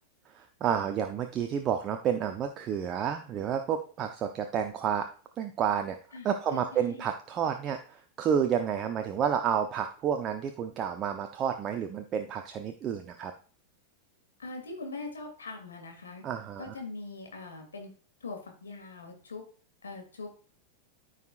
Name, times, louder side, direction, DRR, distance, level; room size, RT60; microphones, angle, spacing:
voice 1, 0.3-5.1 5.4-6.0 6.2-13.3 16.2-16.7, right 8 dB, 30° right, 6 dB, 0.7 m, -30 dB
voice 2, 6.1-7.0 14.4-16.2 16.6-17.9 18.2-19.4 19.8-20.4, left 3 dB, 70° left, 3 dB, 2.4 m, -42 dB
14.0 x 5.0 x 2.5 m, 0.40 s
figure-of-eight pair, 90°, 0 cm